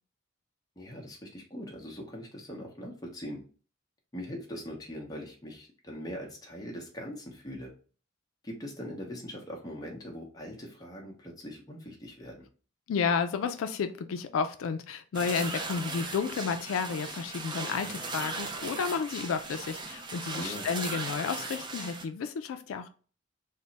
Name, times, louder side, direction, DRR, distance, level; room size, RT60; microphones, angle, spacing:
voice 1, 0.8-3.4 4.1-7.7 8.4-12.5 20.4-20.7, equal, 20° left, -1 dB, 0.8 m, -41 dB
voice 2, 12.9-22.9, left 6 dB, 85° left, 9 dB, 0.3 m, -32 dB
sound 1, 15.1-22.0, right 3 dB, 20° right, 0.4 m, -38 dB
3.3 x 2.1 x 3.9 m, 0.39 s
head